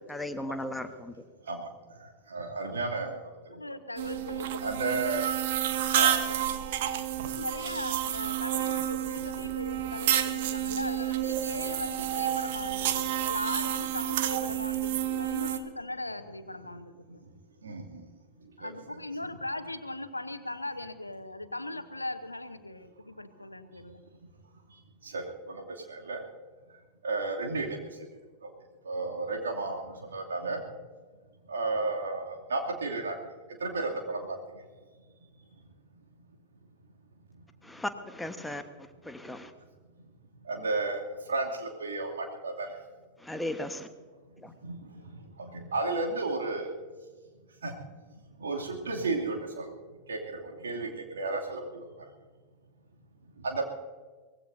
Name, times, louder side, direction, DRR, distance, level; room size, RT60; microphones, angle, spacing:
voice 1, 0.1-1.1 37.6-38.6 39.0-39.5 43.2-43.9 44.4-44.5, left 1 dB, 5° left, 8 dB, 1.3 m, -36 dB
voice 2, 2.3-3.2 4.6-5.2 5.9-6.8 17.6-18.0 18.6-19.0 25.0-25.6 25.9-26.2 27.0-27.8 28.8-29.8 30.1-30.6 31.5-33.1 33.6-34.2 40.5-41.0 41.3-42.7 44.6-44.8 45.0-46.7 47.6-47.7 48.4-49.8 50.1-50.9 51.1-51.9 53.4-53.7, right 3 dB, 70° right, 0 dB, 2.7 m, -33 dB
voice 3, 3.5-4.7 6.7-7.0 7.2-17.2 18.6-24.0, left 2 dB, 85° left, 11 dB, 1.0 m, -39 dB
sound 1, 4.0-15.6, right 11 dB, 55° right, 1.1 m, -30 dB
24.0 x 19.0 x 2.7 m, 1.5 s
figure-of-eight pair, 90°, 0 cm